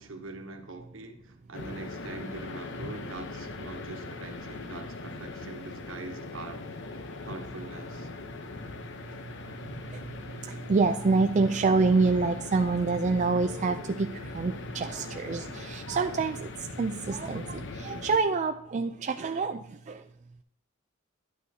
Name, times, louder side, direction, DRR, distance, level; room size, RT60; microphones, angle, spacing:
voice 1, 0.0-6.6 7.2-8.1, right 3 dB, 70° right, 5 dB, 1.2 m, -43 dB
sound 1, 1.5-18.2, left 3 dB, 65° left, 0.8 m, -41 dB
voice 2, 10.5-16.5 16.8-20.0, right 4 dB, 35° right, 6 dB, 0.4 m, -27 dB
10.5 x 8.8 x 2.8 m, 0.73 s
head